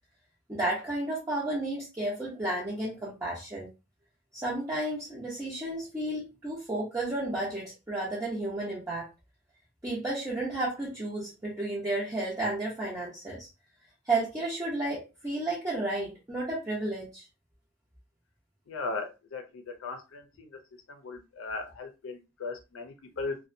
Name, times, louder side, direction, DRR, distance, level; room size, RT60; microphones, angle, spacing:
voice 1, 0.5-3.7 4.3-9.1 9.8-13.5 14.1-17.2, right 2 dB, 15° right, -7 dB, 0.6 m, -32 dB
voice 2, 18.7-19.4 19.8-20.2 21.0-23.4, left 3 dB, 90° left, 5 dB, 0.5 m, -37 dB
2.6 x 2.1 x 2.5 m, 0.28 s
head